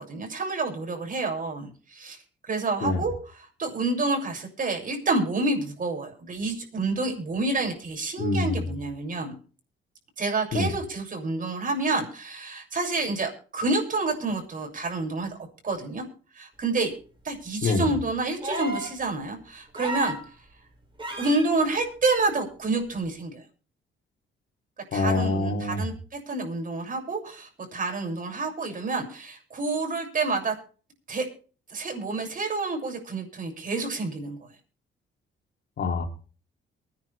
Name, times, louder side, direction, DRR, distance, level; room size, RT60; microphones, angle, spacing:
voice 1, 0.0-9.4 10.2-15.4 15.6-16.0 16.3-16.9 17.2-20.2 21.2-23.4 24.9-30.5 31.1-31.2 31.7-34.5, right 3 dB, 45° right, 2 dB, 7.3 m, -28 dB
voice 2, 8.2-8.6 10.5-10.7 17.6-17.9 24.9-25.8 35.8-36.0, left 3 dB, 60° left, 3 dB, 3.3 m, -25 dB
sound 1, 18.4-19.0 19.8-20.3 21.0-21.5 23.0-23.1, right 1 dB, 25° right, 7.6 m, -32 dB
24.0 x 10.5 x 3.6 m, 0.39 s
cardioid pair, 90°, 20 cm